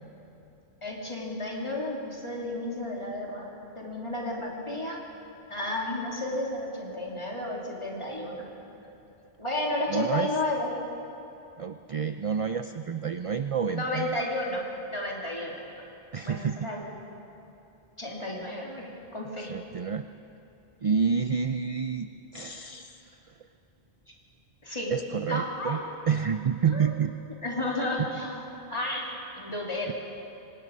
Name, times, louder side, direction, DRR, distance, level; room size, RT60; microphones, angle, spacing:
voice 1, 0.8-3.4 3.7-5.0 5.5-8.4 9.4-10.7 13.7-14.6 14.9-15.7 16.2-16.9 18.0-19.5 24.6-24.9 25.3-25.8 26.7-26.9 27.4-28.4 28.7-29.9, left 1 dB, 30° left, -3 dB, 3.3 m, -32 dB
voice 2, 9.9-10.3 11.6-14.2 16.1-16.7 19.4-20.1 20.8-23.1 24.9-25.8 26.1-27.1 28.0-28.1, right 6 dB, 45° right, 9 dB, 0.5 m, -29 dB
26.0 x 18.5 x 5.4 m, 2.9 s
omnidirectional pair, 1.1 m